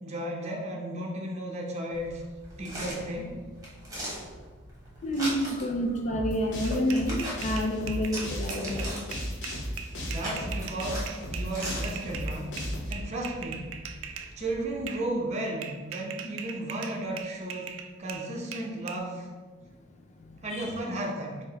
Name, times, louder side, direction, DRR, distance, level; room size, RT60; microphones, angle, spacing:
voice 1, 0.0-2.2 2.6-3.4 10.0-12.5 12.9-13.7 14.4-17.7 18.0-19.3 20.4-21.4, right 1 dB, 35° right, -1 dB, 0.6 m, -34 dB
sound 1, 1.9-14.8, equal, 20° right, 1.2 m, -41 dB
voice 2, 5.0-8.9 20.2-20.7, equal, 35° left, 3 dB, 0.4 m, -29 dB
sound 2, 6.1-12.9, equal, 55° left, 0.9 m, -35 dB
sound 3, 6.6-14.3 14.9-15.1 15.6-19.0, right 7 dB, 75° right, 0.3 m, -41 dB
4.6 x 2.1 x 3.9 m, 1.4 s
head